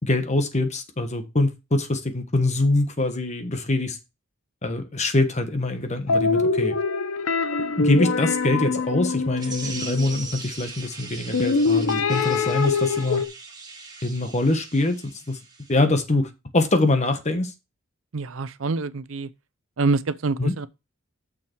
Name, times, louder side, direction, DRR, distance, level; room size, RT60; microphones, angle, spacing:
voice 1, 0.0-4.0 4.6-6.8 7.7-13.2 14.0-15.4 15.7-17.5 20.4-20.5, left 2 dB, 35° left, 1.3 m, -24 dB
sound 1, 6.1-10.3 11.3-13.3, left 4 dB, 85° left, 0.7 m, -24 dB
sound 2, 9.4-15.8, right 4 dB, 20° right, 1.7 m, -40 dB
voice 2, 18.1-19.3 19.8-20.7, right 3 dB, 70° right, 0.6 m, -26 dB
6.6 x 5.8 x 4.5 m
head